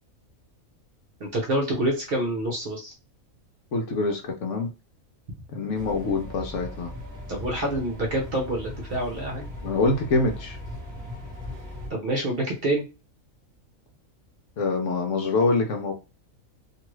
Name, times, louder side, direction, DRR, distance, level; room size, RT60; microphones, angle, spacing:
voice 1, 1.2-2.9 7.3-9.4 11.9-12.8, right 1 dB, 50° right, 0.8 m, -27 dB
voice 2, 3.7-4.7 5.5-6.9 9.6-10.6 14.6-15.9, left 3 dB, 65° left, 0.9 m, -25 dB
sound 1, 5.8-11.9, left 1 dB, 20° right, 1.1 m, -38 dB
2.6 x 2.4 x 3.0 m
omnidirectional pair, 1.5 m